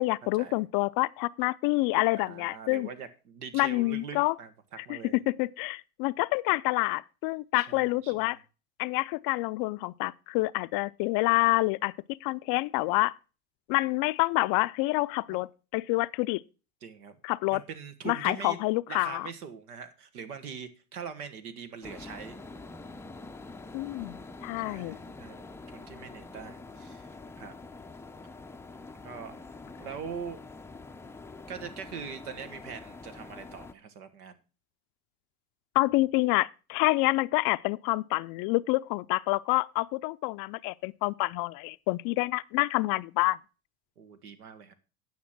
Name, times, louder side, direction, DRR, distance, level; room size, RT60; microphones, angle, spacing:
voice 1, 0.0-2.9 3.5-4.3 4.8-8.4 8.8-13.1 13.7-16.4 17.2-17.6 18.0-19.3 23.7-25.0 35.7-43.4, left 22 dB, 55° left, 0.5 m, -27 dB
voice 2, 2.1-4.5 4.8-5.2 7.5-8.4 15.3-15.4 16.8-17.2 17.5-18.6 18.9-22.4 24.6-25.4 25.7-27.1 27.4-27.6 29.0-29.4 29.8-30.4 31.5-34.4 44.0-44.7, right 6 dB, 85° right, 1.4 m, -42 dB
sound 1, 21.8-33.7, left 3 dB, 5° left, 0.4 m, -45 dB
9.5 x 6.0 x 5.9 m
hypercardioid pair, 85°, 44 cm